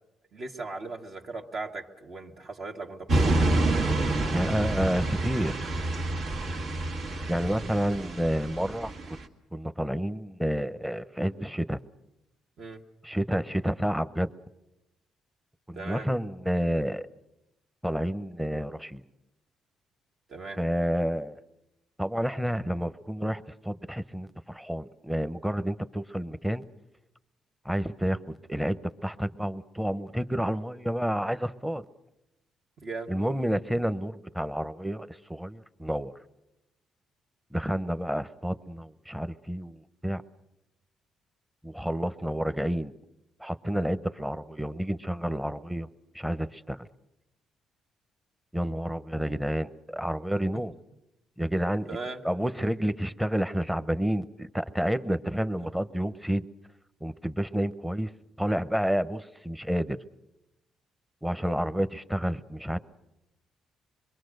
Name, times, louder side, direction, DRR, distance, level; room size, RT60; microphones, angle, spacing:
voice 1, 0.3-3.4 12.6-12.8 15.8-16.1 20.3-20.6 32.8-33.1 51.9-52.2, right 3 dB, 55° right, 1 dB, 1.8 m, -38 dB
sound 1, 3.1-9.2, right 2 dB, 75° right, 2.2 m, -28 dB
voice 2, 4.3-5.7 7.3-8.9 9.5-11.8 13.0-14.3 15.7-17.1 17.8-19.0 20.6-21.4 22.0-26.7 27.6-28.2 28.5-31.8 33.1-36.1 37.5-40.2 41.6-42.9 43.4-45.9 46.1-46.9 48.5-50.7 51.4-52.0 52.2-56.5 57.0-58.1 58.4-60.0 61.2-62.8, equal, 5° right, 13 dB, 0.9 m, -29 dB
25.5 x 22.5 x 6.6 m, 0.91 s
cardioid pair, 90°, 0 cm